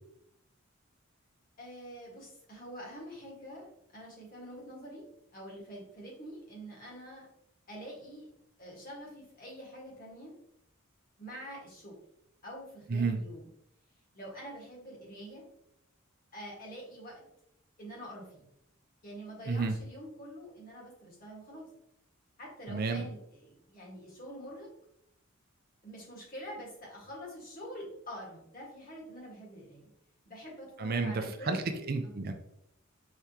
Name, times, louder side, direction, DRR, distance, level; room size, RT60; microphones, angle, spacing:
voice 1, 1.6-5.0 5.3-7.2 7.7-8.3 8.6-10.3 11.2-12.0 12.4-13.5 14.1-15.4 16.3-17.2 17.8-18.5 19.0-21.7 22.4-24.7 25.8-29.9 30.2-31.6 32.0-32.1, equal, 45° left, -3 dB, 1.6 m, -46 dB
voice 2, 22.7-23.1 30.8-32.3, right 4 dB, 45° right, 6 dB, 0.4 m, -31 dB
4.8 x 3.4 x 2.9 m, 0.77 s
head